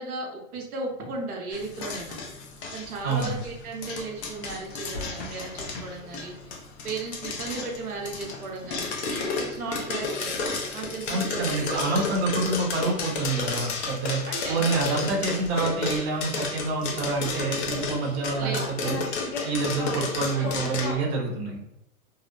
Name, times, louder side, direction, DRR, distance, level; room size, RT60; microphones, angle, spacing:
voice 1, 0.0-2.2 2.7-6.6 6.8-10.3 10.7-11.7 14.2-14.6 18.4-18.7 19.9-20.6, right 3 dB, 85° right, 0 dB, 0.9 m, -35 dB
sound 1, 1.5-20.9, left 4 dB, 50° left, 0.7 m, -32 dB
voice 2, 3.0-3.3 11.1-14.2 14.5-19.0 19.4-21.6, right 3 dB, 45° right, -1 dB, 0.7 m, -27 dB
2.7 x 2.1 x 2.5 m, 0.84 s
hypercardioid pair, 130°, 43 cm